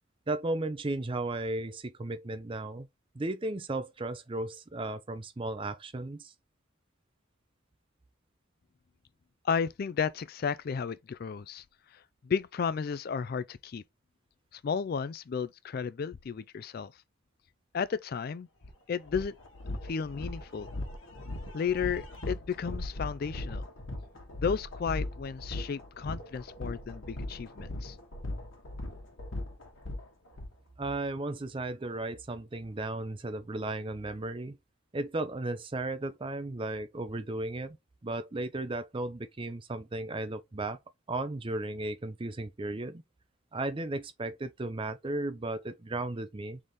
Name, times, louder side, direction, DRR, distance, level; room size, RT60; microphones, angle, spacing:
voice 1, 0.3-2.9 3.1-6.3 30.8-34.6 34.9-37.8 38.0-40.8 41.1-43.0 43.5-46.6, right 2 dB, 25° right, 0.5 m, -35 dB
voice 2, 9.4-11.6 11.9-13.8 14.5-16.9 17.7-18.5 18.9-19.4 19.8-20.7 21.5-23.6 24.4-28.0, left 6 dB, 45° left, 0.3 m, -33 dB
sound 1, 18.6-18.7 19.1-30.5, left 1 dB, 65° left, 1.3 m, -38 dB
4.0 x 3.6 x 3.1 m
head